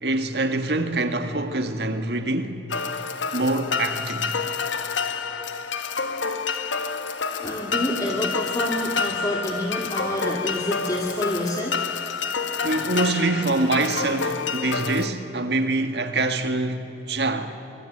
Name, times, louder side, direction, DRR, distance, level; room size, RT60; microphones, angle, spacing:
voice 1, 0.0-2.7 3.3-4.4 12.6-17.6, right 2 dB, 65° right, 1.9 m, -25 dB
sound 1, 2.7-15.1, left 5 dB, 90° left, 1.5 m, -28 dB
voice 2, 7.4-11.8, equal, 20° left, 2.2 m, -28 dB
25.0 x 24.5 x 8.8 m
head